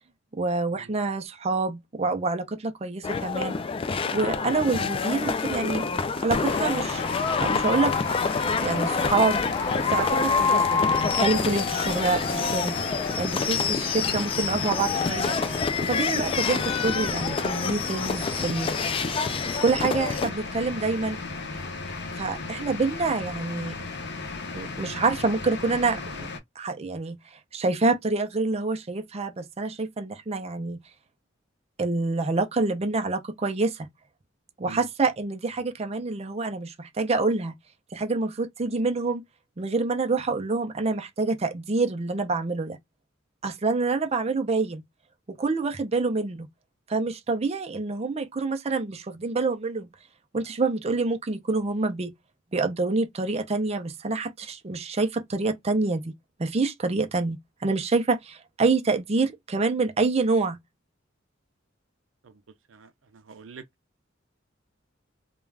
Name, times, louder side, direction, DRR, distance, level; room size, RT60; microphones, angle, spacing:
voice 1, 0.4-3.6 4.1-5.9 6.2-7.0 7.4-7.9 8.6-9.4 9.9-12.8 13.2-15.4 15.8-18.7 19.6-21.2 22.2-23.8 24.5-26.3 26.6-30.8 31.8-33.9 34.6-37.5 37.9-39.2 39.6-42.8 43.4-44.8 45.4-46.5 46.9-49.9 50.3-52.1 52.5-56.1 56.4-60.6, right 3 dB, 35° right, 0.5 m, -27 dB
sound 1, 3.0-20.3, left 5 dB, 30° left, 0.3 m, -27 dB
sound 2, 6.5-26.4, left 3 dB, 60° left, 0.7 m, -36 dB
voice 2, 62.7-63.6, right 4 dB, 80° right, 0.5 m, -45 dB
2.4 x 2.3 x 3.2 m
head